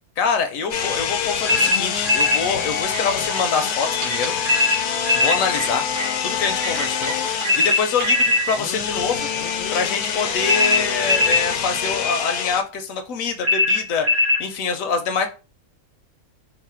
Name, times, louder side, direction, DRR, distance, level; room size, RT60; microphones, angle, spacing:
voice 1, 0.2-4.3 5.1-5.8 6.2-9.3 9.7-14.1 14.4-15.3, left 5 dB, 70° left, 7 dB, 1.0 m, -25 dB
sound 1, 0.7-12.6, left 7 dB, 90° left, 1.2 m, -26 dB
sound 2, 1.5-2.4 4.5-5.4 7.5-8.5 10.5-11.5 13.4-14.4, left 3 dB, 80° right, 1.8 m, -19 dB
sound 3, 2.7-6.1 6.6-7.6 8.0-8.6 9.2-9.3 9.7-12.5, right 5 dB, 45° right, 0.8 m, -33 dB
4.0 x 2.1 x 4.3 m, 0.33 s
omnidirectional pair, 1.6 m